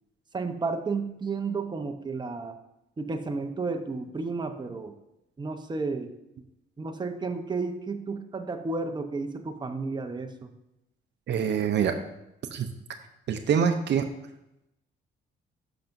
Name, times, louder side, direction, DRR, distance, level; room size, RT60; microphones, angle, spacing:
voice 1, 0.3-2.6 3.0-4.9 5.4-6.4 6.8-10.5, right 4 dB, 20° right, 6 dB, 0.8 m, -32 dB
voice 2, 11.3-11.9 12.5-12.7 13.3-14.1, right 7 dB, 60° right, 7 dB, 0.7 m, -25 dB
11.5 x 5.9 x 2.6 m, 0.87 s
cardioid pair, 90°, 20 cm